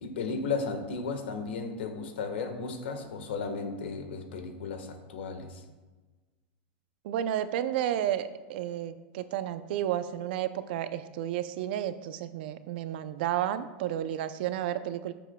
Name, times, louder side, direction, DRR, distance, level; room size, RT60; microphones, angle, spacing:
voice 1, 0.0-5.6, left 4 dB, 85° left, 6 dB, 1.4 m, -34 dB
voice 2, 7.0-15.1, right 11 dB, 65° right, 12 dB, 0.5 m, -32 dB
13.5 x 7.1 x 2.3 m, 1.3 s
supercardioid pair, 135°, 6 cm